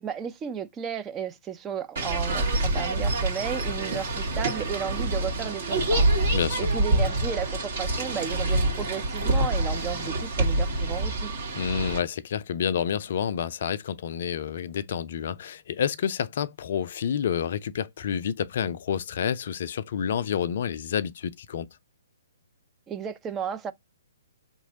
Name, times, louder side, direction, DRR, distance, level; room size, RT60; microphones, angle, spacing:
voice 1, 0.0-6.1 6.6-11.3 22.9-23.7, right 8 dB, 15° right, 0.4 m, -34 dB
sound 1, 2.0-12.0, right 2 dB, 50° right, 1.5 m, -26 dB
voice 2, 6.3-6.7 11.6-21.7, left 8 dB, 50° left, 0.4 m, -29 dB
4.4 x 3.0 x 2.7 m
figure-of-eight pair, 125°, 0 cm